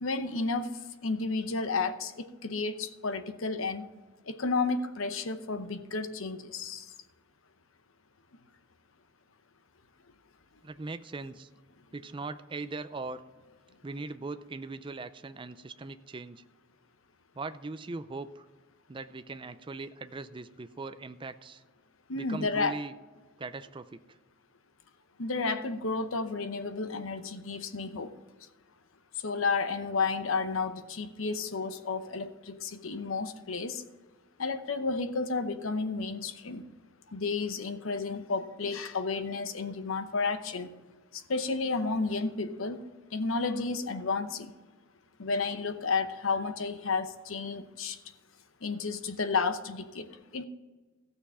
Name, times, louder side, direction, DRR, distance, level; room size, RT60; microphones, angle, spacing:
voice 1, 0.0-0.7 1.0-3.9 4.3-6.9 22.1-22.7 25.2-28.1 29.2-33.8 34.4-36.6 37.1-40.7 41.1-42.8 43.1-44.5 45.2-48.0 48.6-50.4, left 4 dB, 75° left, 10 dB, 0.8 m, -32 dB
voice 2, 10.6-11.5 11.9-13.2 13.8-16.4 17.3-18.5 18.9-21.6 22.2-22.9 23.4-24.2, right 3 dB, 25° right, 11 dB, 0.4 m, -40 dB
15.0 x 6.8 x 5.6 m, 1.3 s
head